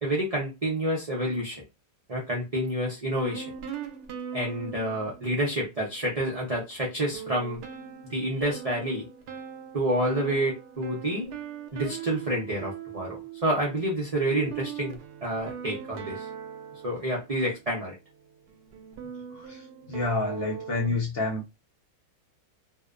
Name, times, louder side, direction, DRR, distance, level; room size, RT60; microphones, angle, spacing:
voice 1, 0.0-1.6 2.1-3.5 4.3-7.6 8.1-9.1 9.7-11.3 11.7-16.3 16.8-18.0, right 1 dB, 65° right, 0.3 m, -28 dB
sound 1, 3.2-6.1 6.5-6.6 7.1-17.8 18.5-20.9, right 8 dB, 80° right, 1.1 m, -41 dB
voice 2, 19.3-21.6, left 3 dB, 45° left, 0.8 m, -29 dB
2.7 x 2.1 x 2.4 m
omnidirectional pair, 1.7 m